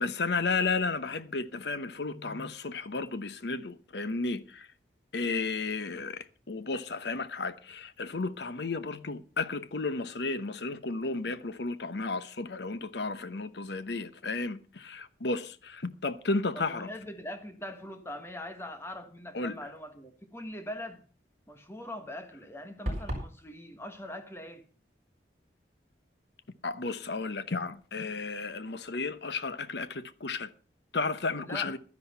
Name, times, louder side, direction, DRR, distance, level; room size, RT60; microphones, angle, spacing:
voice 1, 0.0-4.7 5.1-16.9 19.3-19.6 26.6-30.5 30.9-31.8, left 3 dB, 75° left, 0.9 m, -33 dB
voice 2, 16.5-21.0 21.5-24.6 31.4-31.7, left 1 dB, 15° left, 1.3 m, -42 dB
sound 1, 22.9-23.3, right 1 dB, 40° right, 5.0 m, -32 dB
12.0 x 10.5 x 5.5 m
head